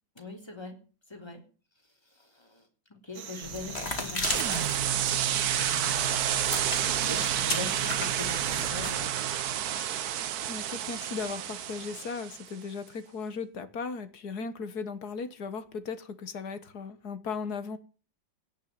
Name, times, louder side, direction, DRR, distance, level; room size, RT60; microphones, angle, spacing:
voice 1, 0.2-0.8 1.1-1.4 2.1-4.7 5.5-9.1, left 2 dB, 15° left, 3 dB, 3.6 m, -42 dB
sound 1, 3.1-8.7, right 7 dB, 80° right, 2.3 m, -43 dB
sound 2, 3.4-9.1, left 2 dB, 30° left, 3.1 m, -37 dB
sound 3, 4.2-12.5, right 10 dB, 60° right, 1.2 m, -29 dB
voice 2, 10.4-17.8, left 5 dB, 55° left, 12 dB, 1.8 m, -37 dB
17.5 x 6.5 x 9.5 m, 0.38 s
omnidirectional pair, 2.1 m